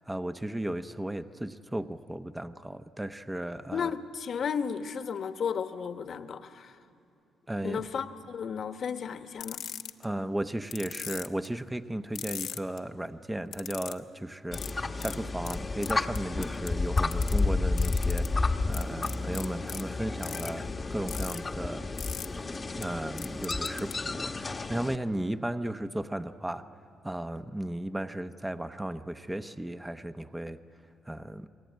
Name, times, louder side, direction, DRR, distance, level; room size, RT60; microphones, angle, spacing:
voice 1, 0.0-3.9 7.5-8.0 10.0-21.9 22.8-26.6 27.0-30.6 31.1-31.5, right 1 dB, 10° right, 10 dB, 0.8 m, -35 dB
voice 2, 3.7-6.8 7.6-9.6, left 6 dB, 55° left, 9 dB, 1.2 m, -34 dB
sound 1, 9.4-10.0 10.7-11.5 12.1-12.8 13.5-14.0 14.5-14.7 15.0-15.1 15.4-15.5 15.8-16.7 17.0-17.4 17.8-18.3 18.7-19.8 20.2-20.5 21.1-21.4 22.0-22.3 22.8-22.9 23.2-23.9, left 9 dB, 75° left, 1.1 m, -38 dB
sound 2, 14.5-25.0, left 3 dB, 25° left, 1.1 m, -31 dB
29.5 x 21.5 x 9.3 m, 2.6 s
cardioid pair, 90°, 0 cm